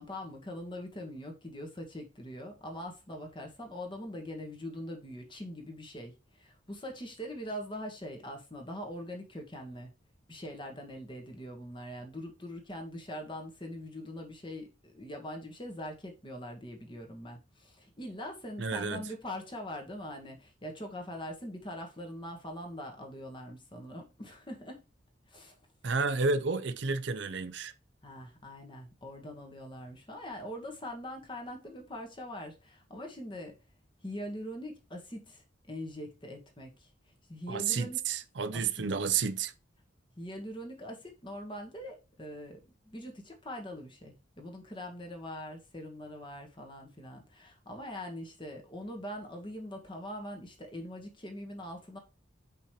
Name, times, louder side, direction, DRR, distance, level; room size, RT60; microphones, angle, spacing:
voice 1, 0.0-9.9 10.3-24.8 25.3-25.6 28.0-33.6 34.0-36.9 37.3-38.0 38.5-38.9 40.2-52.0, equal, 25° left, 1.6 m, -42 dB
voice 2, 18.6-19.0 25.8-27.7 37.5-39.5, right 4 dB, 65° right, 0.6 m, -31 dB
5.6 x 4.4 x 5.0 m
head